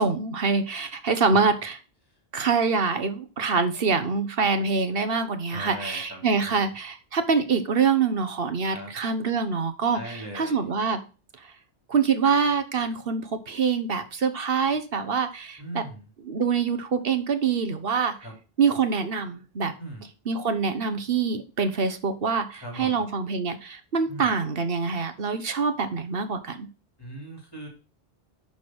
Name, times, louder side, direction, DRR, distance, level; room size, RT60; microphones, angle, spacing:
voice 1, 0.0-1.8 2.3-11.0 11.9-15.8 16.3-18.2 18.6-19.7 20.3-26.7, right 5 dB, 65° right, 9 dB, 1.3 m, -25 dB
voice 2, 5.5-6.8 8.7-8.9 9.9-10.7 15.6-16.1 18.1-18.3 19.8-20.1 22.5-23.0 24.1-24.4 27.0-27.7, right 1 dB, 20° left, 0 dB, 3.5 m, -39 dB
11.5 x 4.1 x 6.2 m, 0.34 s
omnidirectional pair, 1.1 m